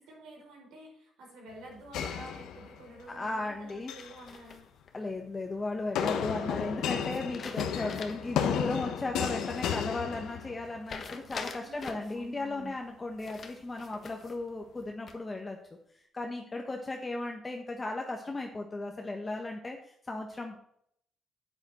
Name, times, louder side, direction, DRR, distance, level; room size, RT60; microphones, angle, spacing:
voice 1, 0.0-4.6 11.6-12.7, right 1 dB, 85° right, -1 dB, 5.1 m, -49 dB
sound 1, 1.9-3.0 3.7-4.2 6.0-10.8, left 8 dB, 85° left, 1.0 m, -33 dB
voice 2, 3.1-3.9 4.9-15.6 16.1-20.6, left 2 dB, 25° left, 2 dB, 1.3 m, -36 dB
sound 2, 4.0-4.9 7.1-8.4 8.8-8.9 10.9-12.2 13.2-14.4 14.8-15.4, left 5 dB, 50° left, 1.3 m, -44 dB
9.7 x 8.7 x 4.4 m, 0.68 s
cardioid pair, 90°, 0 cm